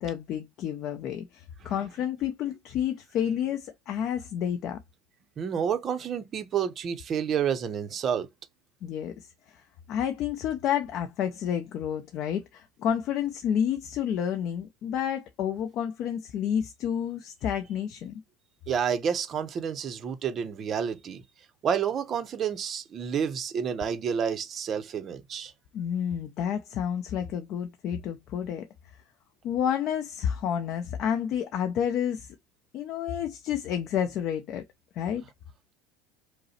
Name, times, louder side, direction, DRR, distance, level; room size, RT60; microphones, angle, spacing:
voice 1, 0.0-4.8 8.8-9.6 9.9-18.2 25.7-28.7 29.4-32.3 32.7-34.6 34.9-35.2, left 9 dB, 40° left, 0.5 m, -30 dB
voice 2, 5.4-8.3 18.7-21.2 21.6-25.5, right 7 dB, 30° right, 0.6 m, -29 dB
5.2 x 2.0 x 4.2 m
cardioid pair, 160°, 0 cm